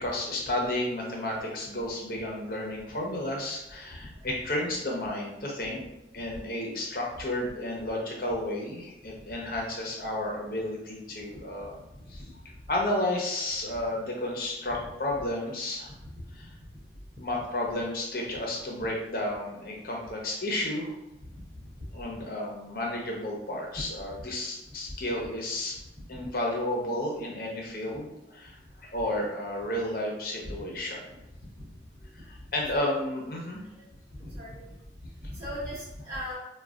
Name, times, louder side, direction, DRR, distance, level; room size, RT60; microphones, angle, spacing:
voice 1, 0.0-5.8 6.1-11.8 12.1-12.3 12.7-15.9 16.3-16.5 17.2-20.9 21.9-25.8 26.1-31.0 32.1-33.6, left 1 dB, 55° left, -1 dB, 0.8 m, -32 dB
voice 2, 34.2-34.6 35.2-36.3, equal, 35° right, -10 dB, 1.1 m, -37 dB
4.5 x 2.3 x 2.4 m, 0.93 s
head